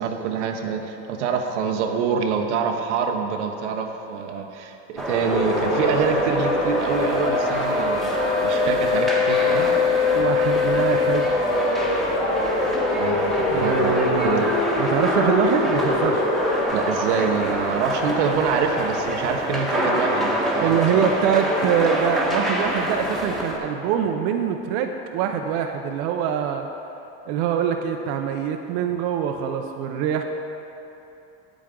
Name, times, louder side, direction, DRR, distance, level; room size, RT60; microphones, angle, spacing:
voice 1, 0.0-8.2 8.4-10.1 13.0-14.5 16.7-21.1, right 6 dB, 85° right, 4 dB, 0.9 m, -26 dB
sound 1, 5.0-23.6, equal, ahead, 1.2 m, -26 dB
sound 2, 5.3-16.7, left 3 dB, 80° left, 1.8 m, -23 dB
voice 2, 10.1-11.3 13.4-14.4 14.8-16.3 20.6-26.7 27.3-30.2, right 8 dB, 60° right, 4 dB, 0.6 m, -24 dB
9.1 x 8.6 x 3.7 m, 3.0 s
supercardioid pair, 110°, 34 cm